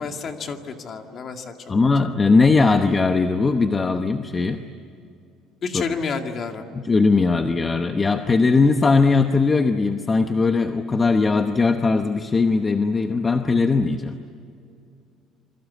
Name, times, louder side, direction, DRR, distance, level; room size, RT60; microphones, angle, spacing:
voice 1, 0.0-1.6 5.6-6.6, left 5 dB, 35° left, 5 dB, 2.1 m, -30 dB
voice 2, 1.7-4.6 5.7-5.8 6.7-14.1, left 4 dB, 15° left, 7 dB, 0.9 m, -19 dB
28.0 x 23.0 x 8.5 m, 2.5 s
cardioid pair, 165°, 0 cm